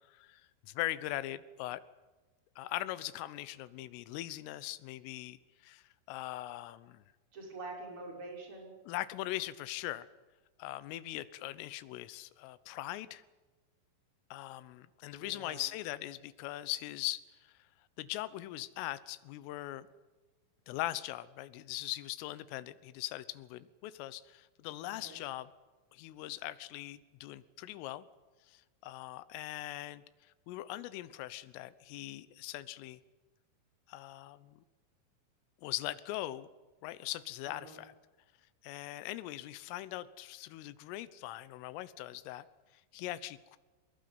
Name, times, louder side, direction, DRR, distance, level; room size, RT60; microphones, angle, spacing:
voice 1, 0.1-1.8 2.6-7.0 8.9-10.1 10.6-13.2 14.3-17.5 18.0-19.9 20.7-25.5 25.9-28.1 28.5-30.0 30.5-33.0 33.9-34.6 35.6-36.5 36.8-37.9 38.6-42.5 42.9-43.6, left 15 dB, 80° left, 15 dB, 3.5 m, -41 dB
voice 2, 7.3-8.7 15.1-15.6 25.0-25.2 37.4-37.8, right 2 dB, 25° right, 1 dB, 6.5 m, -46 dB
23.0 x 20.5 x 9.6 m, 1.2 s
omnidirectional pair, 5.9 m